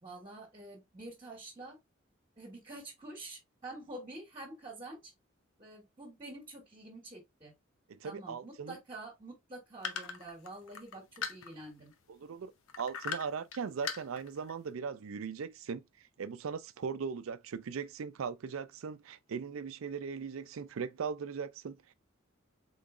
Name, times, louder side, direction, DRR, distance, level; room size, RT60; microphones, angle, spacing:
voice 1, 0.0-1.8 2.4-5.1 5.6-7.5 8.0-11.9, right 2 dB, 25° right, 1.3 m, -47 dB
voice 2, 7.9-8.8 12.1-12.5 12.8-21.9, right 6 dB, 75° right, 0.4 m, -39 dB
sound 1, 9.8-11.9 12.7-13.6 13.8-14.5, left 6 dB, 85° left, 0.7 m, -38 dB
3.9 x 3.7 x 2.4 m
head